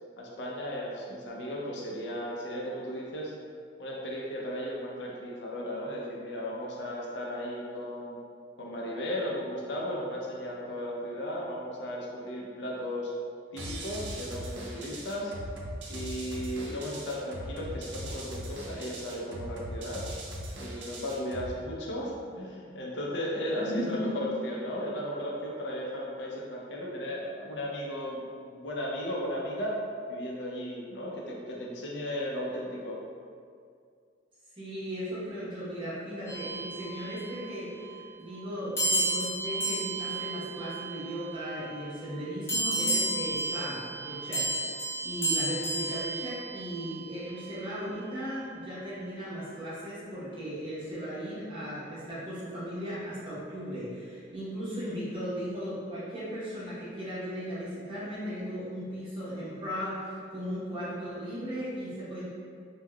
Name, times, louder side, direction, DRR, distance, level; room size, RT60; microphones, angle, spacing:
voice 1, 0.2-3.3 3.8-8.2 8.6-13.1 13.5-15.3 15.9-20.0 20.6-29.8 30.1-33.0, equal, 75° left, -3 dB, 0.5 m, -35 dB
sound 1, 13.6-21.6, equal, 90° right, 0.5 m, -40 dB
voice 2, 23.5-24.3 34.5-62.3, equal, 30° right, -10 dB, 0.9 m, -37 dB
sound 2, 36.3-37.5 38.8-41.5 42.5-47.0, right 2 dB, 15° left, 0.7 m, -32 dB
3.4 x 2.2 x 2.2 m, 2.2 s
head